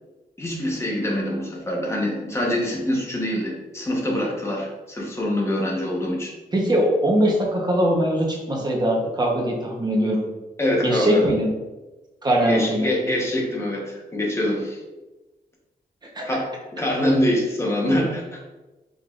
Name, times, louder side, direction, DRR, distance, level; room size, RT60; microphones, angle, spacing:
voice 1, 0.4-6.3 10.6-11.3 12.5-14.8 16.2-18.4, left 1 dB, 15° left, -2 dB, 1.0 m, -24 dB
voice 2, 6.5-10.3 10.8-11.5 12.2-12.9 16.1-16.2, right 1 dB, 25° right, -1 dB, 0.9 m, -21 dB
5.0 x 3.5 x 2.5 m, 1.1 s
wide cardioid pair, 135°, 16 cm